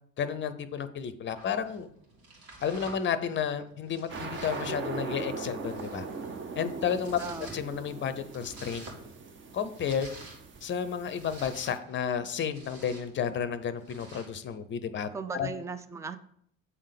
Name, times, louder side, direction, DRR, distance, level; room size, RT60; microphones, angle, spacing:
voice 1, 0.2-1.9 2.6-6.1 6.5-7.2 7.5-8.8 9.5-10.1 10.6-15.5, left 7 dB, 30° left, 12 dB, 0.7 m, -32 dB
Domestic sounds home sounds, 1.3-14.6, right 2 dB, 55° right, 2.4 m, -51 dB
sound 1, 4.1-11.8, right 4 dB, 30° right, 0.8 m, -40 dB
voice 2, 7.2-7.5 15.1-16.2, right 4 dB, 10° right, 10 dB, 0.4 m, -37 dB
8.4 x 3.7 x 5.1 m, 0.67 s
figure-of-eight pair, 60°, 40 cm